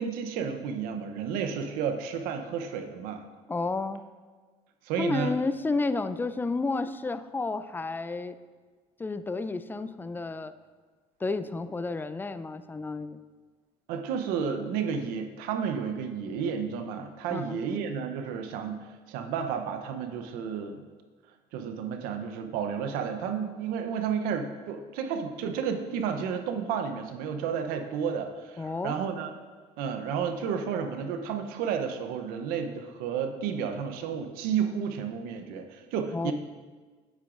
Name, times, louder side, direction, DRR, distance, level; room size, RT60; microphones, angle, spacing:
voice 1, 0.0-3.3 4.8-5.3 13.9-20.7 21.5-29.3 29.8-36.3, right 7 dB, 80° right, 7 dB, 0.7 m, -32 dB
voice 2, 3.5-4.0 5.0-8.4 9.0-10.5 11.2-13.2 17.3-17.6 28.6-29.0 36.1-36.3, left 3 dB, 15° left, 13 dB, 0.4 m, -31 dB
9.0 x 8.2 x 2.5 m, 1.4 s
supercardioid pair, 85°, 15 cm